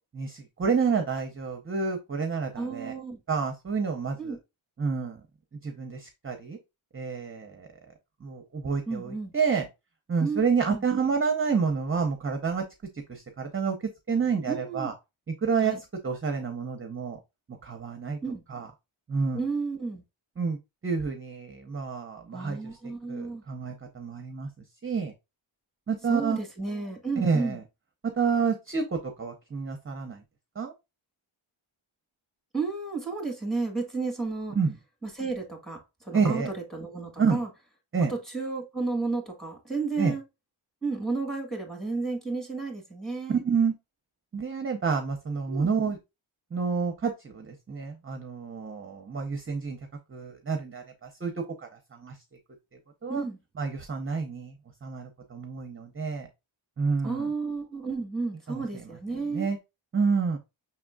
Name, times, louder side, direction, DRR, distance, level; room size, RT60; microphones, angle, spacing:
voice 1, 0.1-2.9 3.3-4.4 4.8-5.2 5.6-6.6 6.9-7.7 8.2-9.7 10.1-12.6 13.1-13.8 14.1-14.9 15.4-15.8 16.0-17.2 17.6-18.2 18.5-18.7 19.1-19.4 20.4-20.6 20.8-22.7 23.1-24.5 24.8-25.1 25.9-26.4 27.2-27.6 28.2-30.2 30.6-30.7 34.6-34.7 36.1-36.5 37.2-37.4 37.9-38.1 40.0-40.1 43.3-43.7 44.3-46.0 46.5-49.8 50.1-51.3 51.9-52.1 53.0-53.2 53.6-54.5 54.8-56.3 56.8-57.3 58.5-58.6 59.3-59.6 59.9-60.4, right 5 dB, 25° right, 0.6 m, -28 dB
voice 2, 2.5-3.2 4.2-4.4 8.9-9.3 10.2-10.4 10.7-10.8 14.5-14.9 15.6-15.8 18.2-18.4 19.3-20.0 22.3-23.4 26.1-27.6 32.5-34.6 35.0-37.5 38.1-40.2 40.8-43.4 45.5-45.7 53.1-53.4 57.0-59.5, right 4 dB, ahead, 1.4 m, -32 dB
5.8 x 3.6 x 2.2 m
wide cardioid pair, 125°, 50 cm